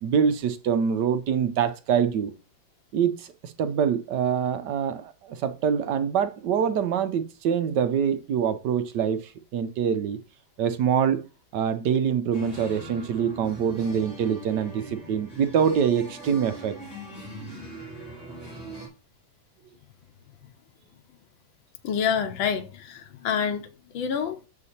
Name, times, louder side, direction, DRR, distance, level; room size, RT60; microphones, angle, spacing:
voice 1, 0.0-2.3 2.9-10.2 10.6-11.2 11.5-16.7, right 7 dB, 70° right, 1.3 m, -25 dB
sound 1, 12.3-18.9, right 1 dB, 20° left, 4.1 m, -41 dB
voice 2, 21.8-23.7 23.9-24.4, left 7 dB, 90° left, 1.7 m, -27 dB
6.8 x 4.9 x 4.2 m
omnidirectional pair, 2.1 m